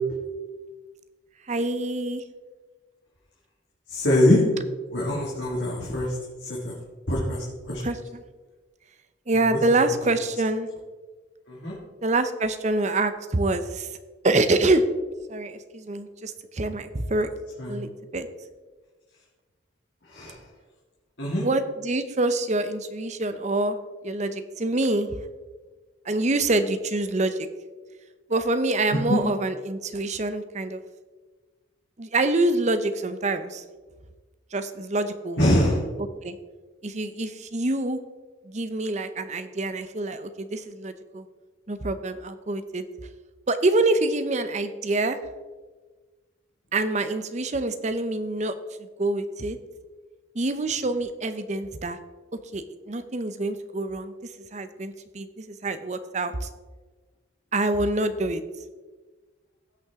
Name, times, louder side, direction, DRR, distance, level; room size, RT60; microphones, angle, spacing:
voice 1, 1.5-2.2 7.8-8.0 9.3-10.7 12.0-13.9 14.2-14.9 15.3-17.3 17.7-18.3 21.4-23.8 24.0-25.1 26.0-27.5 28.3-30.8 32.0-33.6 34.5-35.4 36.2-36.4 36.8-38.0 38.4-41.3 41.7-42.8 43.5-45.2 46.7-49.6 50.3-52.0 52.5-56.5 57.5-58.4, right 2 dB, 35° right, 10 dB, 0.7 m, -26 dB
voice 2, 3.9-4.4 4.9-6.2 6.4-6.7 7.1-7.9 11.5-11.7 17.6-17.8 20.1-20.4 21.2-21.5 28.9-29.2 35.4-35.8, left 1 dB, 60° left, -6 dB, 2.2 m, -23 dB
17.0 x 6.0 x 3.6 m, 1.3 s
head